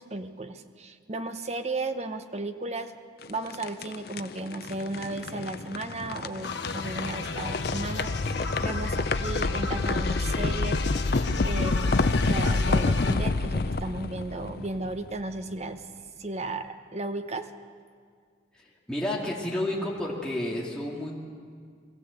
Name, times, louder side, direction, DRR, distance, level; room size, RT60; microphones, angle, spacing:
voice 1, 0.0-2.9 3.3-10.8 11.1-15.8 16.2-17.5, right 2 dB, 35° right, 9 dB, 0.9 m, -35 dB
sound 1, 3.2-15.3, left 3 dB, 55° left, 0.6 m, -28 dB
sound 2, 6.4-13.2, left 5 dB, 70° left, 1.4 m, -36 dB
voice 2, 18.5-21.2, left 1 dB, 5° left, -4 dB, 2.3 m, -31 dB
22.5 x 15.0 x 8.2 m, 2.1 s
head